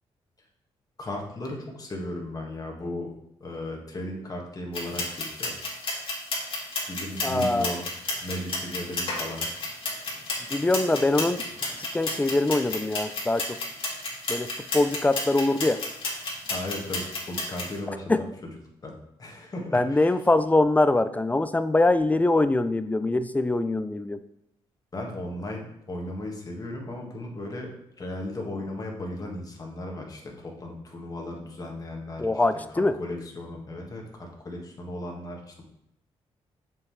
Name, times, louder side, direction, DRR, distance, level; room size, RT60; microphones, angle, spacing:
voice 1, 1.0-3.1 3.4-5.6 6.9-7.8 8.1-9.5 16.5-18.5 18.8-20.1 24.9-27.7 28.0-32.4 32.7-35.6, left 1 dB, 35° left, 0 dB, 1.8 m, -36 dB
sound 1, 4.7-17.7, left 2 dB, 55° left, 2.4 m, -32 dB
voice 2, 7.2-7.7 10.5-11.4 11.8-13.6 14.3-15.8 18.1-18.2 19.7-24.2 32.2-33.0, left 2 dB, 15° left, 13 dB, 0.4 m, -23 dB
6.6 x 5.8 x 3.3 m, 0.81 s
cardioid pair, 85°, 11 cm